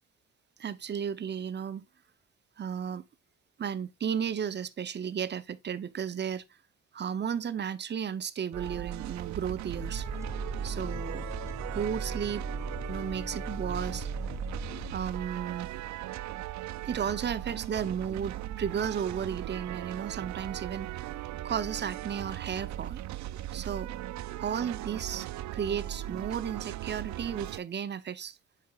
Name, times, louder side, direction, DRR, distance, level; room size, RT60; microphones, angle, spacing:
voice 1, 0.6-1.8 2.6-3.0 3.6-6.4 6.9-10.1 10.6-11.3 11.7-12.5 12.9-14.1 14.9-15.7 16.9-21.1 21.4-23.0 23.5-23.9 24.4-25.3 25.5-28.4, right 8 dB, 35° right, 0.7 m, -34 dB
sound 1, 8.5-27.6, right 13 dB, 70° right, 0.4 m, -38 dB
sound 2, 9.7-14.9, right 1 dB, 10° right, 1.3 m, -38 dB
9.2 x 5.5 x 2.4 m
cardioid pair, 90°, 30 cm